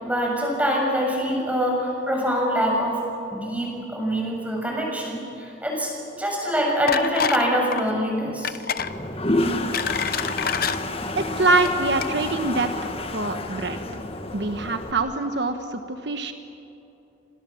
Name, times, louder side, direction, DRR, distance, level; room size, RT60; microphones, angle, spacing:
voice 1, 0.0-3.0 3.3-5.9 6.2-8.6, equal, 10° right, -1 dB, 6.9 m, -24 dB
sound 1, 6.9-7.5 7.7-7.9 8.4-8.9 9.4-10.8 11.5-11.7 12.0-12.1, left 7 dB, 50° left, 0.9 m, -26 dB
Toilet flush, 8.8-14.9, left 1 dB, 30° left, 1.7 m, -29 dB
voice 2, 11.1-12.7 13.1-13.8 14.3-16.3, right 2 dB, 65° right, 6 dB, 1.4 m, -24 dB
29.5 x 26.0 x 7.3 m, 2.9 s
head